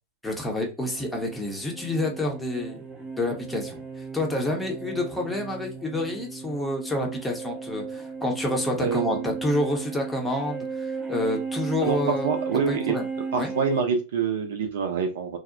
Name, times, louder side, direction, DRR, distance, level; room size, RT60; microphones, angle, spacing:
voice 1, 0.2-2.8 3.2-3.8 4.1-12.3 12.7-13.0 13.4-13.5, left 1 dB, 10° left, 1 dB, 0.7 m, -28 dB
sound 1, 0.8-13.8, right 5 dB, 20° right, 0.9 m, -35 dB
voice 2, 8.8-9.3 11.8-13.0 13.3-15.4, right 6 dB, 60° right, 5 dB, 0.5 m, -26 dB
2.7 x 2.1 x 2.4 m, 0.31 s
figure-of-eight pair, 90°, 0 cm